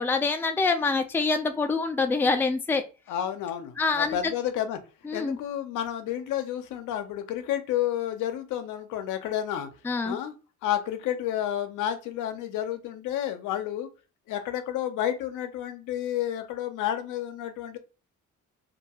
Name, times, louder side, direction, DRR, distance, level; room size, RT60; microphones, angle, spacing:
voice 1, 0.0-2.8 3.8-4.2 5.1-5.4 9.8-10.2, left 4 dB, 5° left, 7 dB, 0.3 m, -25 dB
voice 2, 3.1-4.8 5.1-9.7 10.0-10.3 10.6-13.9 14.3-17.8, left 11 dB, 85° left, 8 dB, 0.6 m, -30 dB
2.6 x 2.3 x 2.8 m, 0.33 s
cardioid pair, 90°, 30 cm